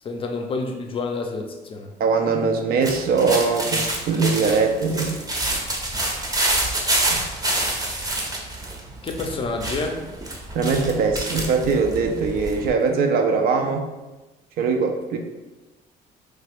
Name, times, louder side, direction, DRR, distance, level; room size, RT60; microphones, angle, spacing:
voice 1, 0.0-1.9 9.0-10.0, left 3 dB, 30° left, 4 dB, 0.5 m, -28 dB
voice 2, 2.0-5.2 7.1-7.2 10.5-13.9 14.6-15.2, right 4 dB, 65° right, 4 dB, 0.4 m, -21 dB
sound 1, 2.8-12.7, right 1 dB, 20° right, 0.7 m, -27 dB
3.1 x 2.4 x 3.4 m, 1.1 s
cardioid pair, 110°, 17 cm